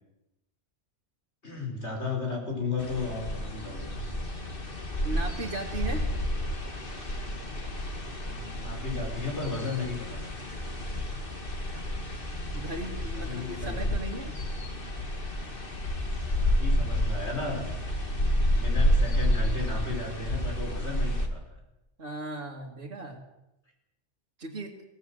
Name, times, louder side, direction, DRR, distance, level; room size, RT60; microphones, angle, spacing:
voice 1, 1.4-3.9 8.3-10.2 13.1-13.8 16.3-17.6 18.5-21.4, left 4 dB, 70° left, 1 dB, 5.8 m, -34 dB
sound 1, 2.8-21.3, equal, 50° left, 2.3 m, -30 dB
voice 2, 5.0-6.1 12.5-14.4 22.0-23.3 24.4-24.8, right 2 dB, 60° right, -2 dB, 2.3 m, -37 dB
22.5 x 17.0 x 7.8 m, 0.90 s
omnidirectional pair, 1.2 m